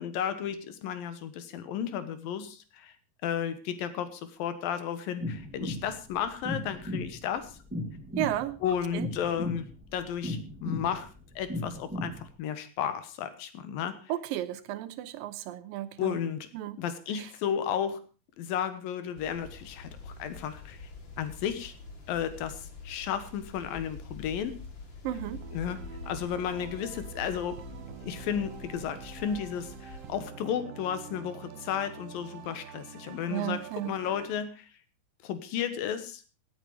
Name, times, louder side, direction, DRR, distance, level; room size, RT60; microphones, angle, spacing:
voice 1, 0.0-2.9 3.2-7.6 8.6-9.7 9.9-11.1 11.4-14.1 16.0-16.5 16.8-18.0 18.4-20.8 21.2-21.7 22.1-24.5 25.5-25.8 26.1-27.6 28.0-33.6 33.9-34.7 35.2-36.2, left 8 dB, 85° left, 11 dB, 3.1 m, -33 dB
sound 1, 5.2-12.3, left 1 dB, 5° right, 0.9 m, -36 dB
voice 2, 8.2-8.6 8.9-9.1 14.1-16.2 16.5-16.8 17.2-17.3 25.0-25.4 33.3-33.9, right 13 dB, 85° right, 14 dB, 2.6 m, -33 dB
sound 2, 19.2-30.3, left 4 dB, 35° left, 2.9 m, -46 dB
sound 3, 25.2-34.3, right 7 dB, 65° right, 1.6 m, -46 dB
17.0 x 9.2 x 4.8 m, 0.34 s
omnidirectional pair, 4.0 m